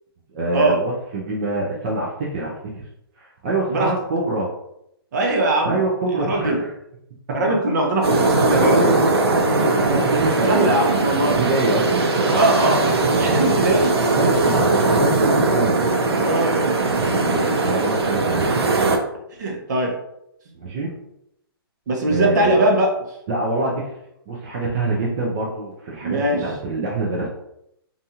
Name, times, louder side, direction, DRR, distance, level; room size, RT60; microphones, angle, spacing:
voice 1, 0.3-2.8 3.2-4.5 5.6-6.7 8.7-9.0 9.9-10.8 11.4-12.2 14.1-15.8 17.2-18.6 20.5-20.9 22.1-22.6 23.3-24.0 24.3-27.3, right 2 dB, 25° right, -4 dB, 0.4 m, -25 dB
voice 2, 5.1-5.8 6.1-6.6 7.3-8.8 10.5-11.3 12.2-14.2 14.7-14.9 16.2-16.5 16.9-17.2 19.4-20.0 21.9-22.9 26.0-26.4, right 1 dB, 45° right, 0 dB, 0.7 m, -21 dB
sound 1, 8.0-19.0, right 3 dB, 80° right, 0.6 m, -19 dB
2.6 x 2.4 x 2.7 m, 0.79 s
hypercardioid pair, 165°, 13 cm